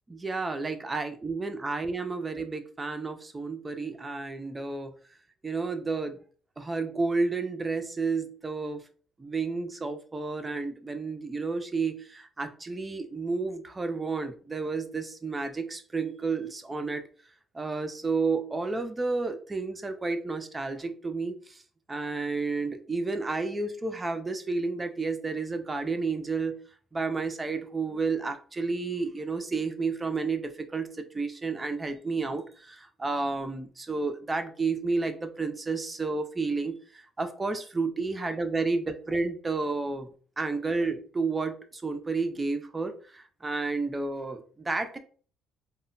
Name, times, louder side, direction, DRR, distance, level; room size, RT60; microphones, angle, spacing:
voice 1, 0.1-4.9 5.4-6.2 6.6-8.8 9.2-17.0 17.5-21.6 21.9-26.6 26.9-40.1 40.4-45.0, right 3 dB, 15° right, 7 dB, 0.4 m, -31 dB
2.1 x 2.1 x 3.7 m, 0.42 s
cardioid pair, 135°, 0 cm